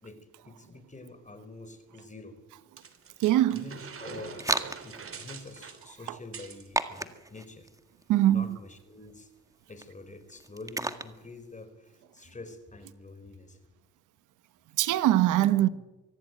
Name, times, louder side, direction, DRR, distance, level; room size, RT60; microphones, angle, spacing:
voice 1, 0.0-2.4 3.5-4.5 4.8-7.7 8.3-9.3 9.7-13.6 15.5-15.7, left 2 dB, 25° left, 4.7 m, -46 dB
sound 1, 2.8-6.7, right 5 dB, 45° right, 3.2 m, -44 dB
sound 2, 3.0-11.6, right 2 dB, 10° right, 1.8 m, -37 dB
voice 2, 3.2-3.6 8.1-8.5 14.8-15.7, right 13 dB, 90° right, 1.1 m, -22 dB
24.5 x 16.5 x 9.2 m
cardioid pair, 90°, 30 cm